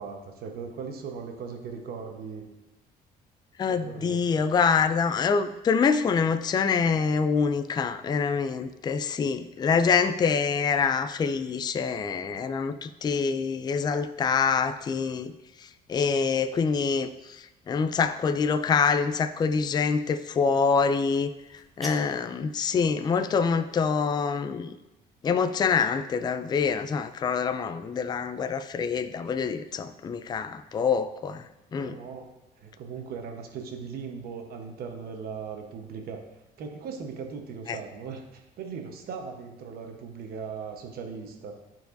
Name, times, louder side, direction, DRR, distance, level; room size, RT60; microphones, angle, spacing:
voice 1, 0.0-2.4 3.7-4.4 31.7-36.2 36.6-41.6, right 5 dB, 65° right, 4 dB, 1.1 m, -39 dB
voice 2, 3.6-15.3 15.9-21.3 21.8-24.7 25.2-31.4 31.7-32.0 37.7-37.8, left 5 dB, 25° left, 10 dB, 0.3 m, -25 dB
sound 1, 21.4-22.4, equal, ahead, 1.2 m, -43 dB
11.5 x 4.5 x 2.6 m, 0.95 s
cardioid pair, 110°, 17 cm